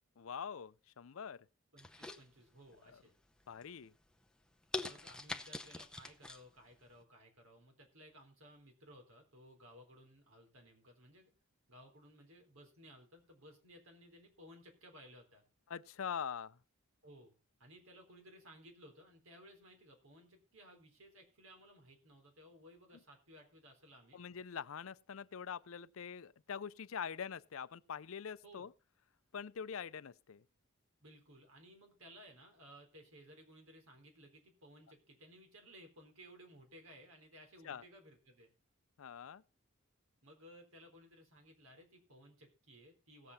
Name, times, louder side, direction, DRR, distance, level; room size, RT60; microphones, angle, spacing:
voice 1, 0.2-1.5 3.5-3.9 15.7-16.6 24.1-28.7 29.3-30.4 37.6-37.8 39.0-39.4, left 7 dB, 70° left, 0.5 m, -44 dB
voice 2, 1.7-3.1 4.8-11.3 11.7-15.4 17.0-17.3 17.6-24.2 28.4-28.7 31.0-38.5 40.2-43.3, equal, 80° right, 3.8 m, -59 dB
sound 1, 1.8-2.8 3.2-3.6 4.1-4.2 4.7-6.4 6.8-6.9, left 2 dB, 5° left, 0.6 m, -43 dB
17.0 x 7.6 x 4.1 m
head